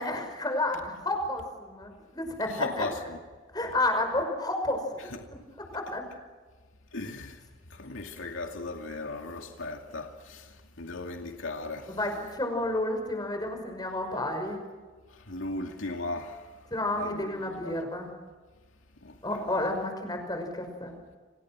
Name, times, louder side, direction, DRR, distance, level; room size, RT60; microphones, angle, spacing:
voice 1, 0.0-2.8 3.5-4.8 5.7-6.0 12.0-14.6 16.7-18.1 19.2-20.9, left 1 dB, 20° left, 5.8 m, -31 dB
voice 2, 2.5-3.2 5.1-5.3 6.9-7.4 7.7-12.0 15.1-16.5 16.9-17.7 19.0-19.2 19.5-19.7, left 2 dB, 85° left, 2.4 m, -37 dB
30.0 x 27.0 x 6.2 m
head